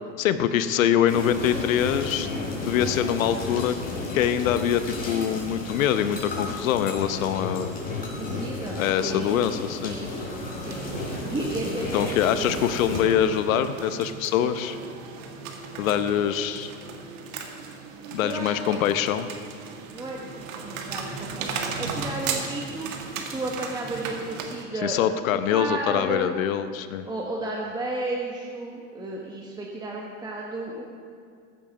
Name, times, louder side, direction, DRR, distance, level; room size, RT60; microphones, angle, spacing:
voice 1, 0.2-2.3 2.6-3.8 4.1-7.7 8.8-10.0 11.9-14.8 15.8-16.7 18.1-19.3 24.8-27.1, left 9 dB, 80° left, 11 dB, 0.9 m, -24 dB
sound 1, 1.1-13.0, left 3 dB, 20° left, 3.8 m, -33 dB
voice 2, 8.2-9.3 9.8-10.1 10.5-10.9 11.3-12.5 16.2-16.3 18.2-18.8 19.9-22.9 23.3-25.0 25.5-26.3 27.0-30.9, right 2 dB, 10° right, -1 dB, 1.1 m, -33 dB
sound 2, 10.6-24.6, right 5 dB, 75° right, 1.8 m, -36 dB
15.0 x 7.7 x 5.9 m, 2.2 s
supercardioid pair, 125°, 40 cm